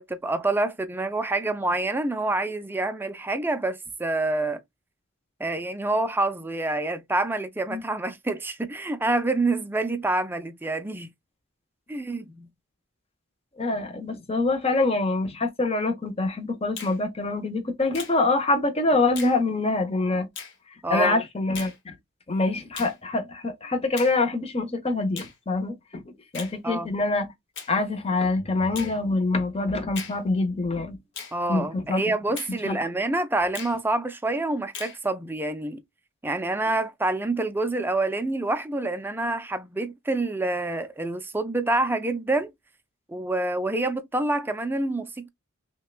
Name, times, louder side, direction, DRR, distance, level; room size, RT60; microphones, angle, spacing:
voice 1, 0.0-4.6 5.4-11.1 11.9-12.5 20.8-21.2 26.6-26.9 31.3-35.8 36.2-42.5 43.1-45.3, right 2 dB, 10° right, 0.4 m, -27 dB
voice 2, 13.6-20.3 20.9-21.7 22.3-26.0 26.3-27.3 27.7-31.0 31.5-32.0 32.6-32.8, left 2 dB, 25° left, 0.7 m, -25 dB
Finger snapping, 16.8-17.0 17.9-18.2 19.2-19.4 20.3-20.6 21.5-21.8 22.7-23.0 24.0-24.2 25.2-25.4 26.3-26.6 27.5-27.7 28.7-29.0 29.9-30.2 31.1-31.4 32.4-32.6 33.5-33.8 34.7-35.0, left 6 dB, 55° left, 1.1 m, -38 dB
5.5 x 2.2 x 2.3 m
head